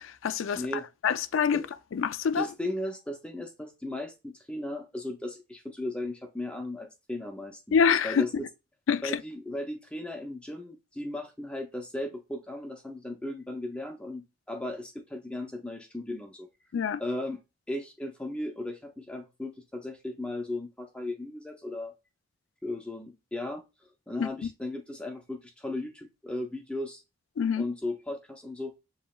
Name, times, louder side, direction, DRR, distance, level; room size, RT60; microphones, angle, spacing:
voice 1, 0.0-0.7 1.0-1.6 1.9-2.5 7.7-8.4 8.9-9.0 16.7-17.0 24.2-24.3 27.4-27.7, left 6 dB, 80° left, 0.4 m, -26 dB
voice 2, 0.6-0.9 1.5-1.7 2.3-7.6 8.0-8.5 9.0-16.5 17.0-17.4 17.7-21.9 22.6-23.6 24.1-27.0 27.6-28.7, left 1 dB, 5° left, 0.5 m, -36 dB
7.1 x 2.9 x 2.3 m
head